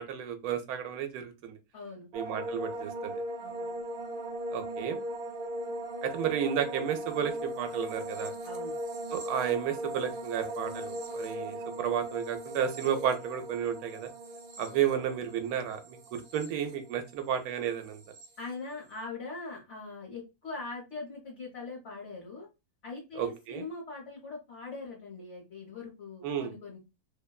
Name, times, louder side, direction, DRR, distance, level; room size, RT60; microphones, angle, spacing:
voice 1, 0.0-1.6 2.1-3.1 4.5-5.0 6.0-8.3 9.1-14.1 14.6-18.0 23.2-23.6 26.2-26.5, right 9 dB, 90° right, 7 dB, 1.1 m, -32 dB
voice 2, 1.7-2.1 3.4-3.8 8.4-8.8 14.6-14.8 18.4-22.5 22.8-26.8, left 3 dB, 55° left, -4 dB, 1.1 m, -42 dB
sound 1, 2.1-17.4 17.6-18.3, right 1 dB, 65° right, 0.7 m, -38 dB
2.7 x 2.1 x 2.2 m, 0.25 s
omnidirectional pair, 1.5 m